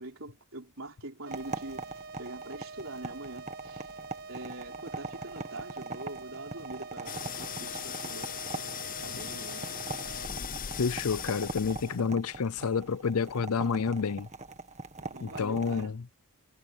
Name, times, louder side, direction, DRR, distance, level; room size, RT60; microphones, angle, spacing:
voice 1, 0.0-3.9 4.3-9.8 11.0-11.2 15.0-16.0, right 2 dB, 65° right, 4.2 m, -44 dB
sound 1, 1.3-15.9, right 3 dB, 30° right, 1.8 m, -42 dB
sound 2, 1.3-10.3, right 4 dB, 50° right, 6.0 m, -46 dB
sound 3, 7.1-12.1, left 9 dB, 40° left, 0.7 m, -39 dB
voice 2, 10.8-14.3 15.2-16.0, left 5 dB, 85° left, 0.6 m, -29 dB
head